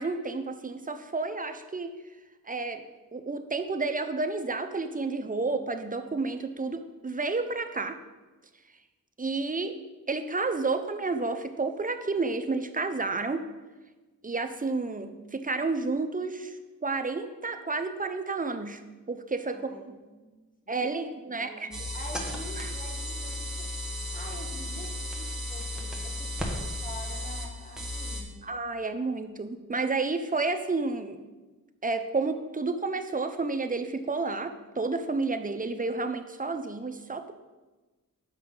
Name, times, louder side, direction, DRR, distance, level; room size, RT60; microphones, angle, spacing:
voice 1, 0.0-1.9 2.5-2.8 3.1-8.0 9.2-9.8 10.1-13.4 14.2-16.5 16.8-18.8 19.1-19.9 20.7-21.7 22.6-22.7 28.4-31.2 31.8-37.3, right 3 dB, 25° right, 7 dB, 0.7 m, -31 dB
voice 2, 19.5-23.7 24.1-28.5, equal, 25° left, 1 dB, 1.5 m, -46 dB
sound 1, 21.7-28.2, left 1 dB, ahead, 1.4 m, -34 dB
7.3 x 5.6 x 3.9 m, 1.2 s
cardioid pair, 40°, 36 cm